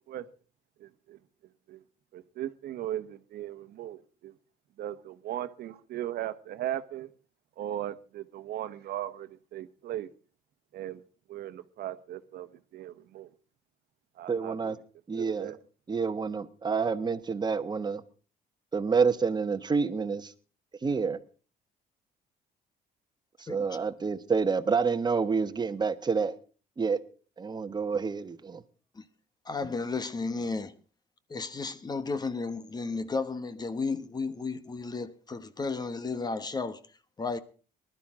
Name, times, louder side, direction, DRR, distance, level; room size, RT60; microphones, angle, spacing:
voice 1, 0.8-1.2 1.7-1.8 2.1-4.3 4.8-7.1 7.6-10.1 10.7-11.0 11.3-13.3 14.2-14.8 15.1-15.6, right 12 dB, 70° right, 1.1 m, -38 dB
voice 2, 14.3-14.8 15.1-15.5 15.9-18.0 18.7-20.3 20.8-21.2 23.4-26.3 26.8-27.0 27.4-28.6, right 5 dB, 25° right, 1.2 m, -28 dB
voice 3, 23.5-23.8 29.0-29.1 29.4-30.7 31.3-36.8 37.2-37.4, left 4 dB, 25° left, 1.1 m, -33 dB
20.0 x 12.5 x 3.7 m
cardioid pair, 110°, 17 cm